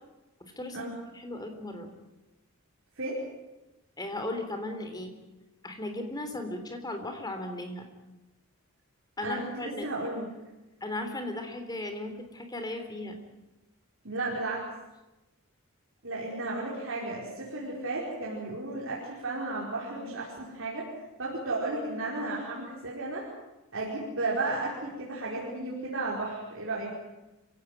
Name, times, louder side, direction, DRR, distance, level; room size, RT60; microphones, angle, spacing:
voice 1, 0.4-1.9 4.0-5.1 5.6-7.9 9.2-9.9 10.8-13.2 17.6-17.7, left 1 dB, 20° left, 6 dB, 3.4 m, -36 dB
voice 2, 9.2-10.3 14.0-14.7 16.0-20.9 21.2-23.3 23.7-26.9, right 2 dB, 60° right, -4 dB, 5.0 m, -33 dB
26.5 x 16.5 x 9.2 m, 1.0 s
head